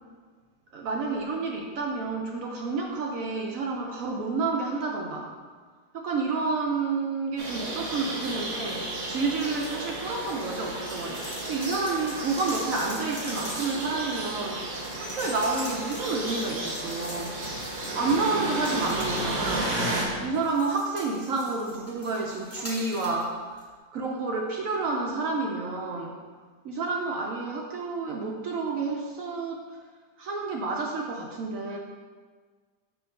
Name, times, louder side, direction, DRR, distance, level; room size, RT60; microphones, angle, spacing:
voice 1, 0.7-5.3 5.9-17.4 17.9-19.7 20.2-23.6 23.9-26.1 26.6-29.8 30.2-31.8, right 3 dB, 75° right, 0 dB, 0.7 m, -30 dB
sound 1, 7.4-20.0, right 1 dB, 55° right, 1.3 m, -33 dB
sound 2, 9.4-9.8 10.1-19.9 20.3-23.3 23.6-23.7, equal, 15° left, 0.7 m, -43 dB
Subway metro underground, 13.2-20.7, equal, 30° left, 1.1 m, -49 dB
6.2 x 2.9 x 5.2 m, 1.5 s
omnidirectional pair, 2.0 m